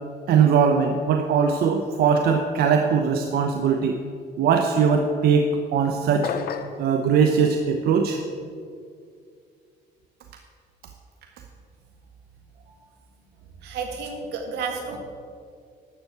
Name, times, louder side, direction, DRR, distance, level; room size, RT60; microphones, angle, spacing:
voice 1, 0.3-4.0 4.4-5.5 5.7-6.3 6.8-8.2, right 6 dB, 70° right, 4 dB, 0.9 m, -20 dB
sound 1, 6.2-6.9, left 7 dB, 60° left, 0.9 m, -30 dB
voice 2, 13.6-15.0, right 5 dB, 85° right, 3 dB, 2.2 m, -31 dB
12.5 x 7.2 x 8.1 m, 2.3 s
cardioid pair, 110°, 17 cm